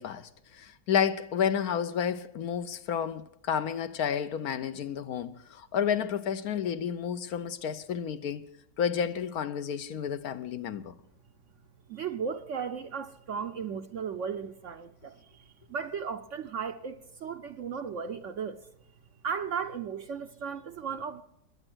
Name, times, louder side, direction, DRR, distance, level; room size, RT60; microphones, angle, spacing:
voice 1, 0.0-8.5 8.8-10.9, left 8 dB, 65° left, 1.2 m, -31 dB
voice 2, 11.9-18.6 19.2-21.2, right 6 dB, 60° right, 0.8 m, -36 dB
21.5 x 8.9 x 6.2 m
omnidirectional pair, 1.8 m